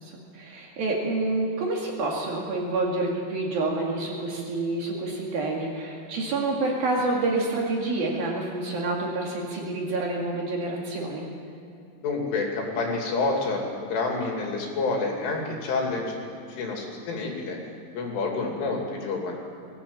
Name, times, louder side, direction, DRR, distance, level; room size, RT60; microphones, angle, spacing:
voice 1, 0.0-11.3, right 2 dB, 55° right, -1 dB, 3.4 m, -28 dB
voice 2, 12.0-16.2 16.5-17.6 17.9-19.4, left 3 dB, 70° left, 1 dB, 5.1 m, -28 dB
21.0 x 16.0 x 8.9 m, 2.6 s
omnidirectional pair, 6.0 m